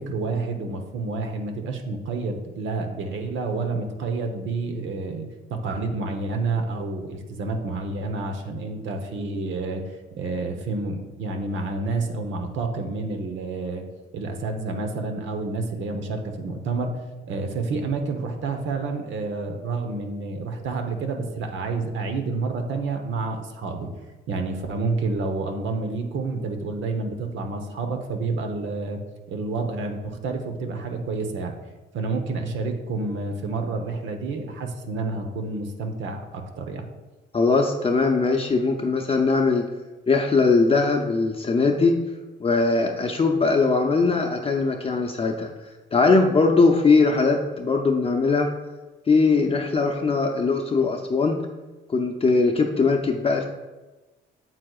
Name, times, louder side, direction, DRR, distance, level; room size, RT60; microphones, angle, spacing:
voice 1, 0.0-9.8 10.1-13.8 14.1-17.0 17.3-23.9 24.3-29.0 29.3-31.5 31.9-36.9, right 3 dB, 75° right, 4 dB, 0.9 m, -29 dB
voice 2, 37.3-39.6 40.1-41.9 42.4-45.5 45.9-48.5 49.1-51.4 51.9-53.5, left 4 dB, 30° left, 2 dB, 0.6 m, -20 dB
7.8 x 7.4 x 2.4 m, 1.2 s
cardioid pair, 90°, 20 cm